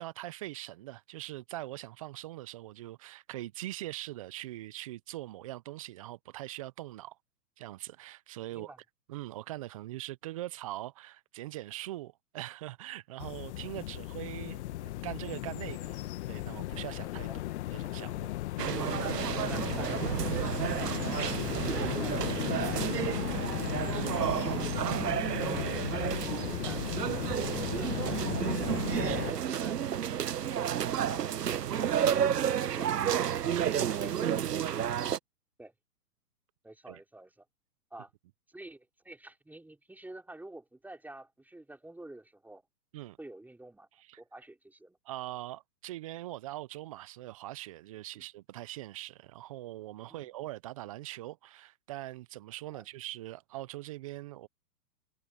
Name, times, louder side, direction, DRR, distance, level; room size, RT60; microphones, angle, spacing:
voice 1, 0.0-7.2 7.6-8.7 9.1-16.0 16.3-17.3 17.7-18.3 21.5-21.6 23.9-24.3 29.0-29.4 31.7-31.9 33.6-34.5 36.9-37.0 42.9-43.2 44.0-44.2 45.0-54.5, right 16 dB, 25° right, 0.5 m, -42 dB
sound 1, 13.2-29.3, left 16 dB, 45° left, 1.3 m, -36 dB
sound 2, 18.6-35.2, right 9 dB, 80° right, 1.1 m, -31 dB
voice 2, 18.8-24.8 25.4-28.9 29.3-32.3 35.6-35.7 36.6-37.4 37.9-38.1 38.5-42.6 43.2-43.9 44.2-45.0 48.1-48.2 50.1-50.3 52.7-52.9, right 2 dB, 5° right, 4.8 m, -49 dB
hypercardioid pair, 130°, 47 cm